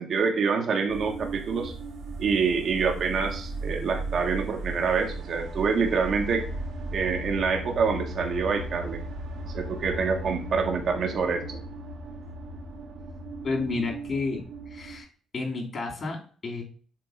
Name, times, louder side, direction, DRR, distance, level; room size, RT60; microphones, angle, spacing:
voice 1, 0.0-1.7 2.2-6.4 6.9-9.0 9.4-11.6, right 5 dB, 60° right, 4 dB, 1.5 m, -26 dB
sound 1, 0.9-15.0, right 2 dB, 85° right, 2.3 m, -36 dB
voice 2, 13.4-15.1 15.3-16.6, left 3 dB, 45° left, -1 dB, 3.4 m, -31 dB
7.5 x 3.5 x 5.0 m, 0.41 s
cardioid pair, 90°, 0 cm